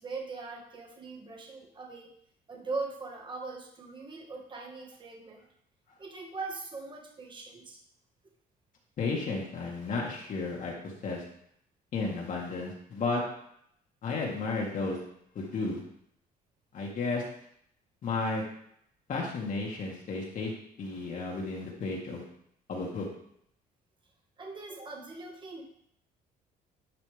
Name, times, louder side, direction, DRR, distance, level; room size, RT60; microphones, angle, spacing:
voice 1, 0.0-2.1 2.5-5.4 6.0-7.8 24.4-25.6, right 3 dB, 30° right, 1 dB, 1.7 m, -40 dB
voice 2, 9.0-11.2 11.9-13.2 14.0-15.0 15.4-15.8 16.7-17.2 18.0-18.4 19.1-20.5 20.8-22.3 22.7-23.1, left 3 dB, 50° left, -2 dB, 1.9 m, -33 dB
11.0 x 5.0 x 3.5 m, 0.70 s
cardioid pair, 110°, 17 cm